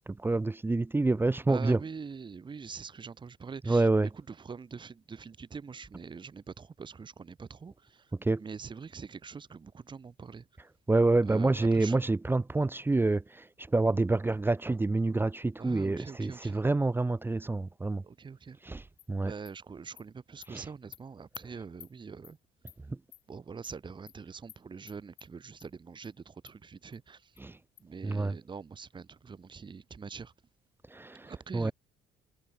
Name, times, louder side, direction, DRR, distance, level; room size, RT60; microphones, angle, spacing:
voice 1, 0.1-1.8 3.7-4.1 8.2-8.4 10.9-13.5 13.7-18.0 18.6-18.8 19.1-19.3 20.5-20.6 22.9-23.0 27.4-27.6 28.0-28.3 30.9-31.7, right 2 dB, 10° right, 0.7 m, -27 dB
voice 2, 1.5-8.1 8.4-10.5 11.2-12.0 15.6-16.6 18.0-18.6 19.2-22.4 23.3-27.3 27.8-30.3 31.2-31.7, right 5 dB, 30° right, 2.0 m, -44 dB
Animal, 19.0-19.1 19.5-19.6 20.0-20.1 20.4-20.5 20.9-21.0 21.3-21.4 21.8-21.9 22.2-22.4 22.7-22.8 23.1-23.2 23.6-23.8 24.1-24.2 24.5-24.6 24.9-25.3 25.6-25.7 26.0-26.1 26.5-26.6 26.9-27.0 27.4-27.5 27.8-27.9, left 12 dB, 60° left, 1.4 m, -51 dB
cardioid pair, 110°, 17 cm